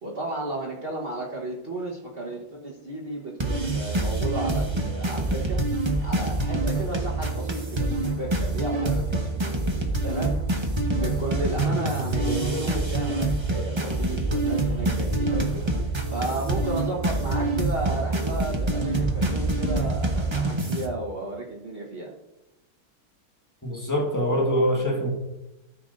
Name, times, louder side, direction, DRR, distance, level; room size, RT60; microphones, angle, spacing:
voice 1, 0.0-5.6 6.0-9.4 10.0-10.4 10.9-15.7 16.1-22.1, right 2 dB, 40° right, -4 dB, 1.3 m, -33 dB
sound 1, 3.4-20.9, right 2 dB, 20° right, 0.8 m, -26 dB
voice 2, 12.2-12.7 23.6-25.1, equal, 10° left, 0 dB, 1.4 m, -25 dB
13.5 x 6.4 x 2.6 m, 0.95 s
omnidirectional pair, 1.6 m